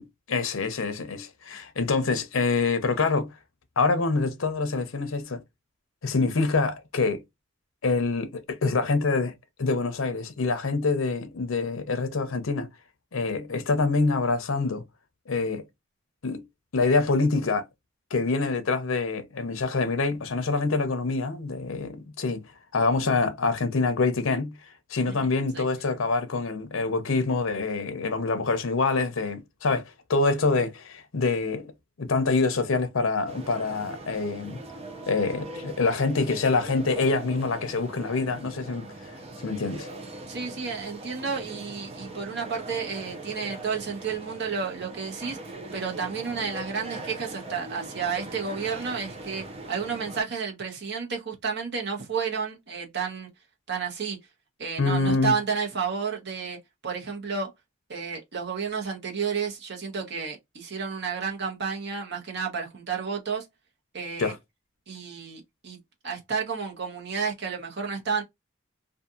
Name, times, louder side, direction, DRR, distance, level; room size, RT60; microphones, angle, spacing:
voice 1, 0.0-3.3 3.8-5.4 6.0-7.2 7.8-9.3 9.6-12.7 13.1-14.8 15.3-15.7 16.2-16.4 16.7-17.7 18.1-22.4 22.7-24.6 24.9-31.7 32.0-34.6 35.0-38.9 39.4-39.9 54.8-55.3 64.2-64.4, left 3 dB, 80° left, 0.7 m, -26 dB
sound 1, 33.3-50.2, right 2 dB, 30° right, 0.6 m, -41 dB
voice 2, 40.3-45.4 45.7-53.3 53.7-54.2 54.6-56.6 56.8-57.5 57.9-63.5 63.9-64.3 64.9-65.8 66.0-68.2, right 5 dB, 60° right, 1.0 m, -31 dB
2.7 x 2.4 x 2.3 m
head